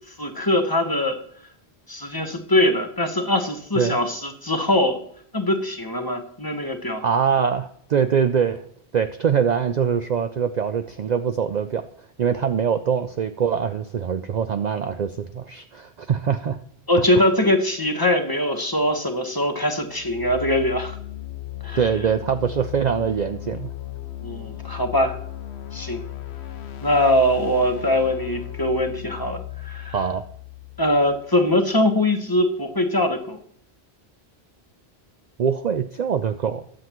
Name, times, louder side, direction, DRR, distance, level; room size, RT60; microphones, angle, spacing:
voice 1, 0.2-1.2 1.9-5.0 5.3-7.0 16.9-21.0 21.6-21.8 24.2-25.2 25.7-26.0 26.8-30.0 30.8-33.4, left 1 dB, 20° left, 5 dB, 1.1 m, -22 dB
voice 2, 7.0-8.6 8.9-11.8 12.2-16.6 17.0-17.1 21.8-23.7 29.9-30.2 35.4-36.6, right 7 dB, 50° right, 9 dB, 0.5 m, -23 dB
sound 1, 19.8-31.6, left 15 dB, 85° left, 1.0 m, -36 dB
20.5 x 7.7 x 3.0 m, 0.67 s
omnidirectional pair, 1.1 m